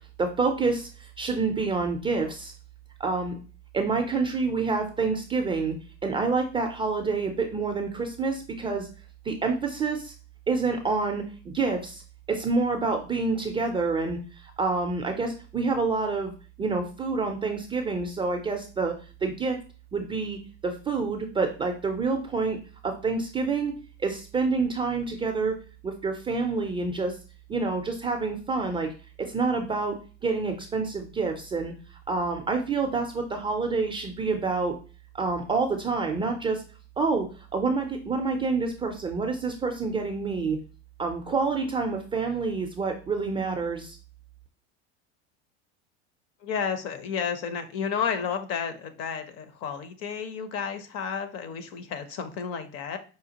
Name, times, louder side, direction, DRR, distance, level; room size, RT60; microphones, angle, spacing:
voice 1, 0.2-2.5 3.0-3.4 3.7-5.8 6.0-8.9 9.2-10.1 10.5-11.2 11.5-12.0 12.3-16.3 16.6-18.9 19.2-19.6 19.9-22.6 22.8-23.7 24.0-25.6 25.8-27.2 27.5-28.9 29.2-30.0 30.2-31.7 32.1-34.7 35.1-36.6 37.0-37.3 37.5-40.6 41.0-44.0, right 4 dB, 15° right, 3 dB, 0.3 m, -27 dB
voice 2, 46.4-53.0, left 6 dB, 45° left, 10 dB, 0.7 m, -31 dB
4.9 x 2.4 x 2.8 m, 0.36 s
supercardioid pair, 115°, 34 cm